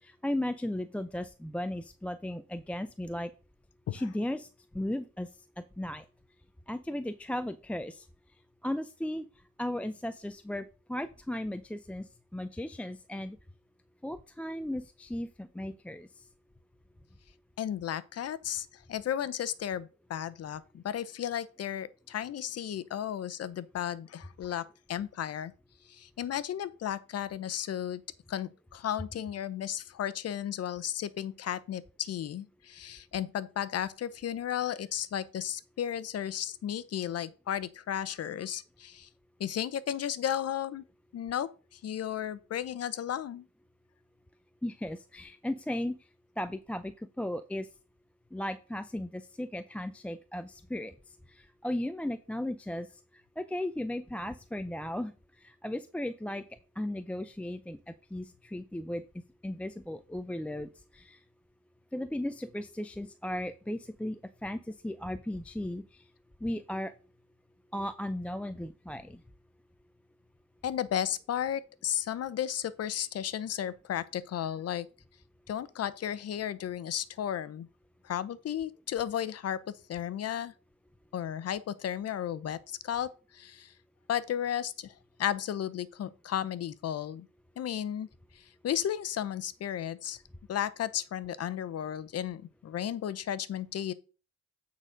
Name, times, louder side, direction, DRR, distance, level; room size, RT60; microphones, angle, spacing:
voice 1, 0.0-3.3 3.9-4.5 4.7-5.3 5.6-6.1 6.7-8.1 8.6-9.3 9.6-13.4 14.0-16.3 44.6-45.9 46.4-47.7 48.3-50.9 51.3-52.9 53.4-56.4 56.8-59.0 59.4-61.2 61.9-66.1 66.4-66.9 67.7-69.2, left 1 dB, 5° left, 0.4 m, -36 dB
voice 2, 17.6-25.5 25.9-28.0 28.3-39.1 39.4-40.8 41.1-43.5 70.6-74.9 75.5-77.7 78.0-79.6 79.9-80.5 81.1-83.7 84.1-84.9 85.2-87.3 87.6-88.1 88.3-90.2 90.5-93.9, left 10 dB, 55° left, 0.7 m, -34 dB
8.7 x 4.1 x 5.1 m
cardioid pair, 90°, 30 cm